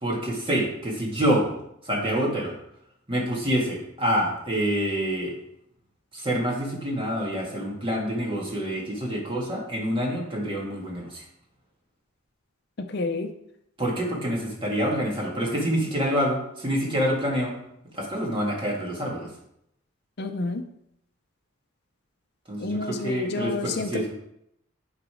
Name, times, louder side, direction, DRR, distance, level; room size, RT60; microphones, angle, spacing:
voice 1, 0.0-1.5 1.8-2.5 3.1-5.3 6.1-11.2 13.8-17.5 17.9-19.3 22.5-24.1, equal, 25° right, -2 dB, 2.0 m, -27 dB
voice 2, 12.8-13.3 20.2-20.6 22.6-23.9, left 3 dB, 50° left, 7 dB, 0.6 m, -29 dB
11.0 x 4.0 x 4.9 m, 0.77 s
head